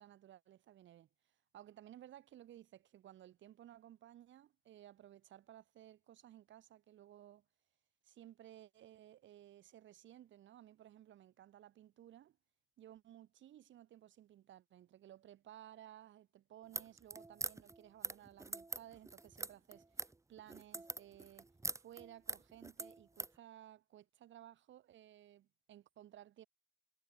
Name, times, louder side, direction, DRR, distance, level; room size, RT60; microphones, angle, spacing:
voice 1, 0.0-7.5 8.0-12.4 12.8-21.5 21.8-26.5, right 12 dB, 80° right, 3.0 m, -58 dB
sound 1, 16.6-23.4, right 2 dB, 15° right, 1.4 m, -44 dB
cardioid pair, 115°, 19 cm